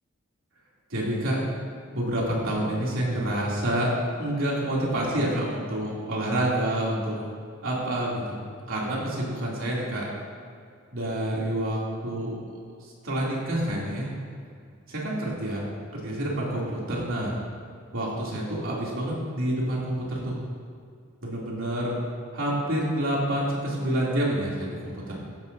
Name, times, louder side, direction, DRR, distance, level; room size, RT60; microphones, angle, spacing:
voice 1, 0.9-1.4 1.9-3.9 4.2-7.2 7.6-8.4 8.7-10.1 10.9-12.4 13.0-14.1 14.9-15.7 15.9-17.4 17.9-20.4 21.2-22.0 22.3-25.0, right 1 dB, 75° right, -5 dB, 3.0 m, -28 dB
14.0 x 10.5 x 2.8 m, 2.3 s
head